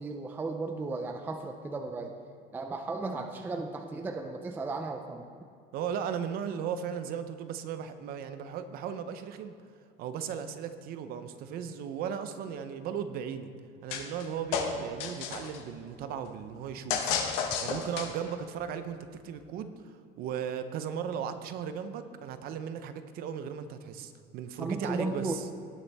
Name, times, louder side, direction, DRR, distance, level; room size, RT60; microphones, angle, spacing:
voice 1, 0.0-2.1 2.5-5.3 24.6-25.4, right 3 dB, 10° right, 4 dB, 0.4 m, -35 dB
voice 2, 5.7-9.5 10.0-13.5 13.8-17.2 17.6-19.0 19.2-25.4, right 8 dB, 45° right, 10 dB, 0.6 m, -36 dB
sound 1, 13.9-14.2 14.5-15.6 16.9-18.3, left 7 dB, 80° left, 1.3 m, -31 dB
18.0 x 6.8 x 3.4 m, 2.4 s
cardioid pair, 170°, 21 cm